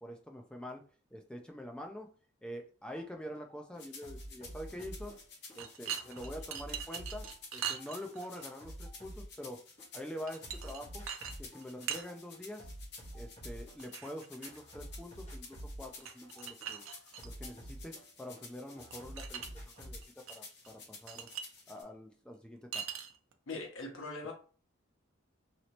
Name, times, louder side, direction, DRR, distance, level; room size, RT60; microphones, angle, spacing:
voice 1, 0.0-0.8 1.1-2.1 2.4-5.2 5.5-7.3 7.5-9.6 9.9-11.1 11.4-12.7 13.1-16.8 17.2-21.3 21.7-22.8, equal, 5° left, 3 dB, 0.3 m, -45 dB
sound 1, 2.9-3.1 3.3-5.6 5.9-9.9 10.2-11.7 11.9-14.2 14.5-18.4 18.8-20.0, right 1 dB, 35° left, 1.1 m, -48 dB
sound 2, 3.8-21.8, left 4 dB, 50° left, 0.9 m, -53 dB
sound 3, 5.5-8.4 10.3-10.8 11.1-11.3 11.6-12.1 13.8-14.6 16.0-17.5 18.9-19.5 19.7-20.4 20.6-20.7 21.1-21.5 22.7-23.3, right 8 dB, 75° right, 0.5 m, -41 dB
voice 2, 23.5-24.3, left 3 dB, 80° left, 1 dB, 0.8 m, -41 dB
3.0 x 2.9 x 2.8 m, 0.39 s
head